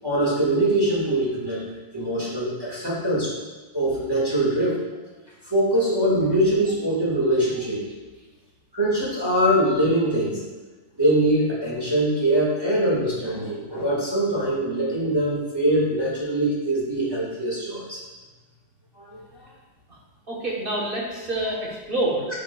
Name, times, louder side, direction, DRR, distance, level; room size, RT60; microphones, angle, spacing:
voice 1, 0.0-1.6 1.9-3.3 3.7-4.8 5.5-7.8 8.7-10.4 11.0-18.0 19.0-19.2, right 1 dB, 15° right, -7 dB, 1.4 m, -23 dB
voice 2, 20.3-22.3, right 1 dB, 35° right, -3 dB, 1.0 m, -27 dB
8.9 x 5.0 x 2.3 m, 1.2 s
omnidirectional pair, 2.1 m